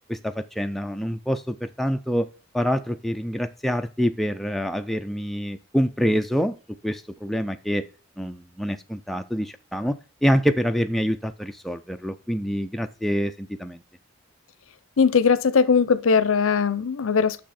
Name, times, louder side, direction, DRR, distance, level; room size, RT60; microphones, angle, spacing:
voice 1, 0.1-2.3 2.5-6.6 6.8-7.8 8.2-9.9 10.2-13.8, equal, ahead, 0.3 m, -26 dB
voice 2, 15.0-17.4, left 5 dB, 80° left, 0.6 m, -20 dB
6.6 x 6.0 x 4.1 m
head